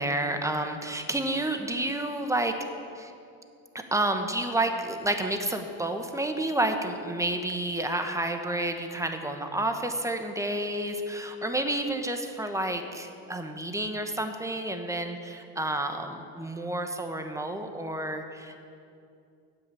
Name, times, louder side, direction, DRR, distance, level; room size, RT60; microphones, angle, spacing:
voice 1, 0.0-2.6 2.9-3.1 3.9-18.6, right 1 dB, 5° right, 6 dB, 1.2 m, -30 dB
9.7 x 7.8 x 8.6 m, 2.5 s
supercardioid pair, 85°, 50 cm